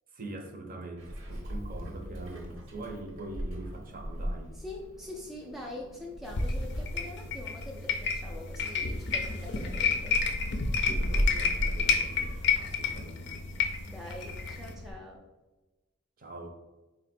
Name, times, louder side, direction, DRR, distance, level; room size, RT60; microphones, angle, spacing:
voice 1, 0.1-4.5 10.8-13.4 16.2-16.5, right 2 dB, 45° right, 3 dB, 0.6 m, -43 dB
Meow, 1.0-14.9, equal, 90° right, 1.0 m, -38 dB
voice 2, 4.5-10.2 13.9-15.2, left 1 dB, ahead, -2 dB, 0.3 m, -44 dB
sound 1, 6.3-14.7, left 5 dB, 55° left, 0.5 m, -30 dB
4.1 x 2.2 x 4.2 m, 1.1 s
head